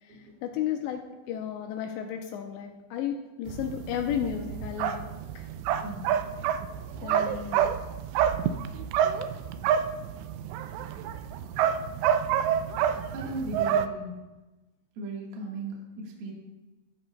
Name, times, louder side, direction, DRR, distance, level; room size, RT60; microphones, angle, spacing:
voice 1, 0.0-5.0 5.4-5.5 7.0-7.7, left 9 dB, 80° left, 4 dB, 2.7 m, -33 dB
sound 1, 3.5-13.9, right 9 dB, 85° right, 2.6 m, -28 dB
voice 2, 13.1-14.1 15.0-16.3, right 2 dB, 65° right, -2 dB, 3.1 m, -37 dB
14.0 x 13.0 x 2.2 m, 1.1 s
omnidirectional pair, 5.4 m